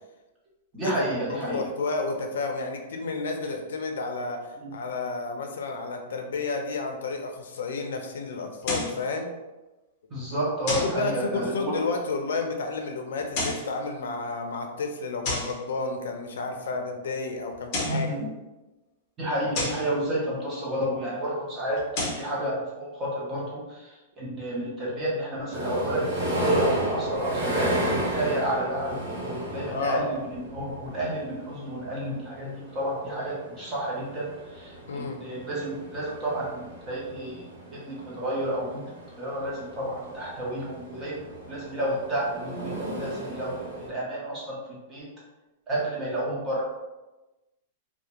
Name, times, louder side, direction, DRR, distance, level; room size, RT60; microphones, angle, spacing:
voice 1, 0.7-1.7 4.6-4.7 10.1-11.8 17.8-18.3 19.2-21.9 22.1-38.8 39.2-41.2 41.5-45.1 45.7-46.7, right 1 dB, 15° right, -5 dB, 0.6 m, -31 dB
voice 2, 1.3-9.3 10.7-18.1 29.7-30.1 34.9-35.2, left 3 dB, 90° left, 3 dB, 0.4 m, -31 dB
sound 1, 8.6-9.0 10.7-11.0 13.2-13.7 15.2-15.6 17.5-18.1 19.5-19.9 21.8-22.3, left 2 dB, 30° left, 0.6 m, -30 dB
sound 2, 25.5-43.9, equal, 45° right, 0.8 m, -33 dB
2.4 x 2.1 x 2.9 m, 1.1 s
supercardioid pair, 180°, 0 cm